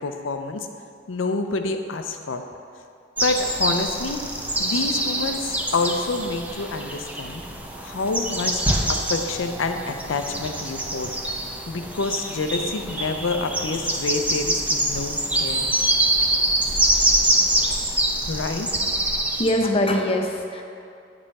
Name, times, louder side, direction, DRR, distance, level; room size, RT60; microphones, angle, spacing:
voice 1, 0.0-0.7 1.1-2.4 3.2-4.3 4.6-7.4 7.8-8.6 8.9-11.1 11.7-15.7 18.3-18.7, left 3 dB, 85° left, 6 dB, 0.6 m, -27 dB
sound 1, 3.2-19.5, right 1 dB, 10° right, 0.6 m, -25 dB
voice 2, 19.4-20.6, left 1 dB, 30° left, 3 dB, 0.7 m, -22 dB
9.0 x 5.4 x 4.2 m, 2.5 s
head